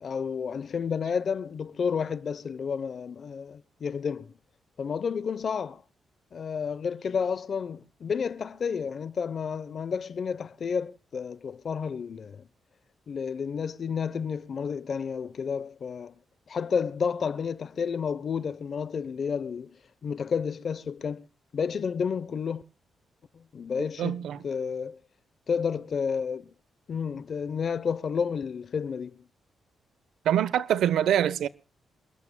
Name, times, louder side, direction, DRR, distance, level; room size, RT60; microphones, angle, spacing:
voice 1, 0.0-4.3 4.8-5.8 6.3-12.4 13.1-16.1 16.5-19.7 20.0-21.3 21.5-22.6 23.3-24.2 24.4-25.0 25.5-26.5 26.9-29.2, left 6 dB, 45° left, 0.9 m, -31 dB
voice 2, 24.0-24.4 30.2-31.5, right 10 dB, 90° right, 1.0 m, -24 dB
28.5 x 13.5 x 2.3 m
wide cardioid pair, 150°, 0 cm